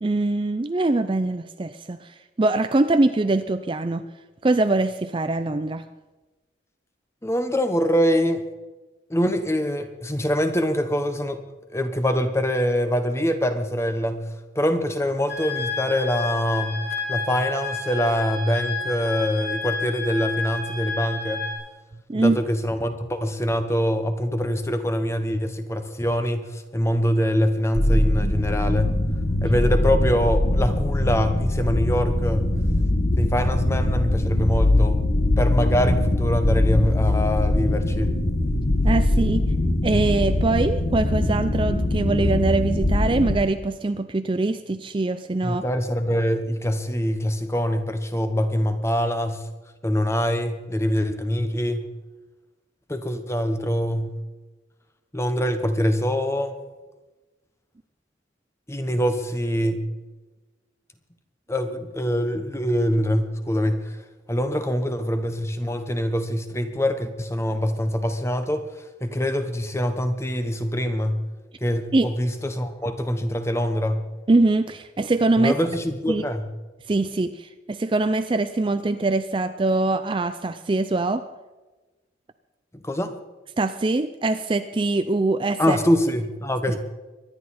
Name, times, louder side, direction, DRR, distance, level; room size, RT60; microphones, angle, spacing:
voice 1, 0.0-4.0 4.4-5.8 22.1-22.4 38.8-39.5 39.8-45.7 71.9-72.1 74.3-75.5 76.1-76.2 76.9-81.2 83.6-85.8 86.7-86.8, right 2 dB, 25° right, 10 dB, 0.4 m, -23 dB
voice 2, 7.2-8.4 9.1-11.4 11.7-14.3 14.5-16.8 17.1-21.5 22.1-28.9 29.4-32.5 33.2-35.0 35.4-38.1 45.4-49.4 49.8-51.9 52.9-54.2 55.1-56.5 58.7-59.9 61.5-64.0 64.3-68.7 69.0-71.2 71.6-74.1 75.4-76.5 82.7-83.1 85.6-86.8, equal, 15° left, 9 dB, 1.0 m, -24 dB
sound 1, 15.3-21.5, left 4 dB, 80° left, 4.1 m, -30 dB
sound 2, 27.8-43.4, left 1 dB, 55° left, 1.5 m, -22 dB
24.0 x 10.5 x 4.2 m, 1.2 s
head